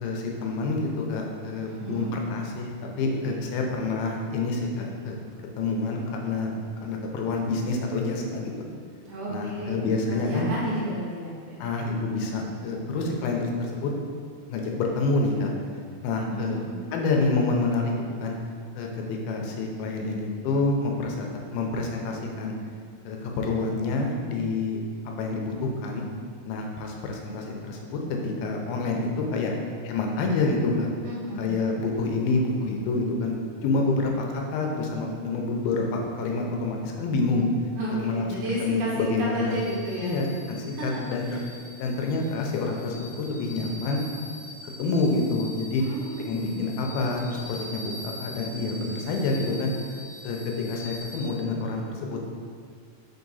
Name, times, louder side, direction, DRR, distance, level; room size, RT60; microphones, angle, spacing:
voice 1, 0.0-2.7 3.0-5.2 5.6-6.5 6.8-8.5 9.3-10.5 11.6-13.9 14.5-15.5 16.0-16.6 16.9-17.9 18.2-18.4 18.8-21.3 21.5-22.5 23.1-24.8 25.2-26.1 26.5-29.5 29.8-30.9 31.4-33.3 33.6-37.5 37.9-38.2 38.6-39.6 40.0-41.3 41.8-44.0 44.8-45.8 46.2-49.7 50.2-52.2, left 3 dB, 85° left, 1 dB, 2.6 m, -27 dB
voice 2, 1.7-2.1 9.1-9.8 10.1-11.6 16.2-16.7 31.0-31.5 37.8-40.2 40.8-41.4 45.8-46.5, equal, 70° right, -7 dB, 2.2 m, -32 dB
sound 1, 39.5-51.3, left 1 dB, 70° left, 2.4 m, -43 dB
5.1 x 4.8 x 4.0 m, 2.2 s
omnidirectional pair, 4.3 m